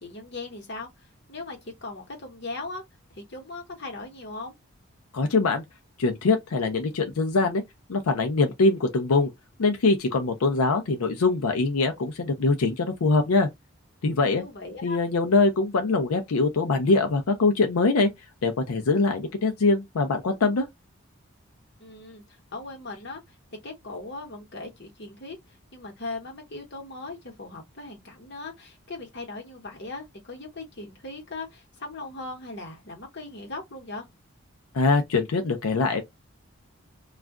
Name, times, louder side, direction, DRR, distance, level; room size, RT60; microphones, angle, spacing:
voice 1, 0.0-2.8 3.1-4.5 14.2-15.0 21.8-23.2 23.6-34.1, left 2 dB, 50° left, 1.1 m, -39 dB
voice 2, 5.1-5.6 6.0-7.6 7.9-9.3 9.6-13.5 14.0-14.4 14.8-18.1 18.4-20.7 34.7-36.0, left 3 dB, 90° left, 0.5 m, -23 dB
2.4 x 2.2 x 3.6 m
head